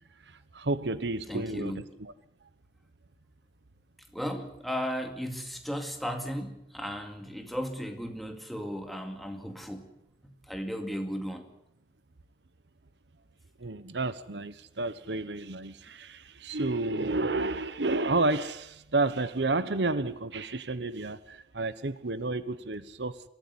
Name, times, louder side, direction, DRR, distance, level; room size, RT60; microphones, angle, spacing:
voice 1, 0.5-2.1 13.6-23.2, right 2 dB, 90° right, 1.1 m, -31 dB
voice 2, 1.3-1.8 4.1-9.9 10.5-11.5, equal, ahead, 2.3 m, -35 dB
23.0 x 14.0 x 9.6 m
head